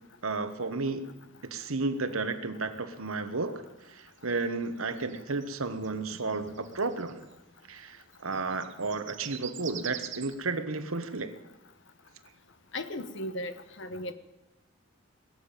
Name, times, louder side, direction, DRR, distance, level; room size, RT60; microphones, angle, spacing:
voice 1, 0.2-1.1 1.4-7.2 7.7-11.3, right 3 dB, 85° right, 10 dB, 1.3 m, -33 dB
sound 1, 4.0-7.3 8.1-10.3, right 11 dB, 60° right, 1.0 m, -44 dB
voice 2, 12.7-14.1, left 1 dB, 60° left, 10 dB, 1.1 m, -36 dB
20.5 x 7.5 x 9.0 m, 0.97 s
head